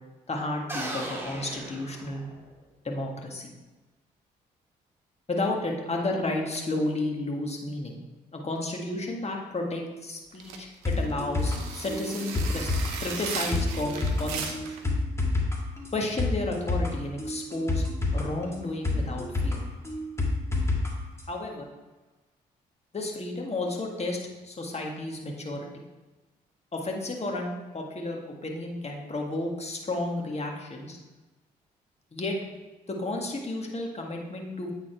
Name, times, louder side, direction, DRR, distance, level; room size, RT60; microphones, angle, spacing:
voice 1, 0.3-2.3 2.8-3.5 5.3-8.0 8.3-12.7 13.0-14.6 15.9-17.8 18.1-19.6 21.3-21.7 22.9-24.2 24.4-25.7 26.7-31.0 32.1-32.4 32.9-34.7, left 2 dB, 35° left, 0 dB, 1.8 m, -32 dB
sound 1, 0.7-2.6, right 1 dB, 10° right, 2.0 m, -37 dB
sound 2, 10.3-14.8, right 6 dB, 85° right, 0.7 m, -36 dB
sound 3, 10.8-20.9 21.2-21.3, left 2 dB, 15° left, 1.8 m, -29 dB
8.9 x 4.0 x 4.5 m, 1.2 s
hypercardioid pair, 45°, 19 cm